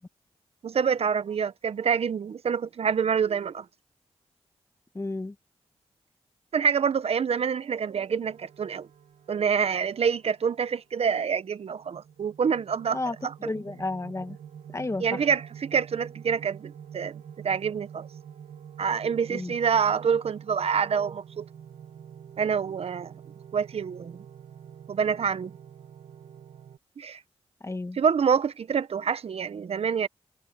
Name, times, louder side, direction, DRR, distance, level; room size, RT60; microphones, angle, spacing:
voice 1, 0.6-3.7 6.5-8.9 9.3-13.5 15.0-18.1 18.8-21.5 22.4-23.1 23.5-24.2 24.9-25.6 27.0-27.2 27.9-30.1, right 6 dB, 65° right, 1.0 m, -27 dB
voice 2, 4.9-5.3 12.9-13.2 13.4-14.4 14.7-15.2 19.3-19.5 27.6-28.0, left 2 dB, 25° left, 2.0 m, -32 dB
sound 1, 8.2-10.9 11.6-26.8, right 8 dB, 85° right, 1.5 m, -47 dB
cardioid pair, 65°, 11 cm